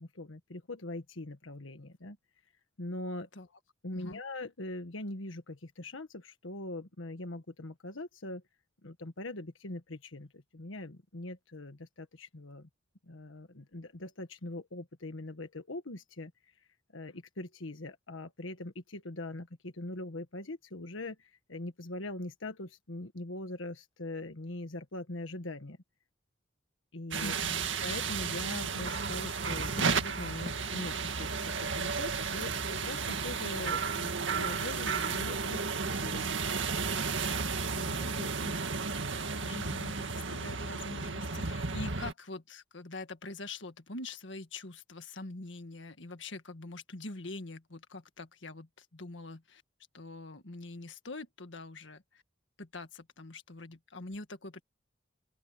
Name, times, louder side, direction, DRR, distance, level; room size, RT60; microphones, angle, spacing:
voice 1, 0.0-2.2 2.8-3.3 3.8-8.4 8.8-12.7 13.1-16.3 16.9-25.8 26.9-27.4 27.8-36.3, left 2 dB, 90° left, 1.5 m, -42 dB
sound 1, 27.1-42.1, right 5 dB, 75° right, 2.0 m, -33 dB
voice 2, 27.2-27.6 37.7-38.6 39.4-49.6 49.9-52.2 52.6-54.6, left 2 dB, 70° left, 1.7 m, -44 dB
open air
head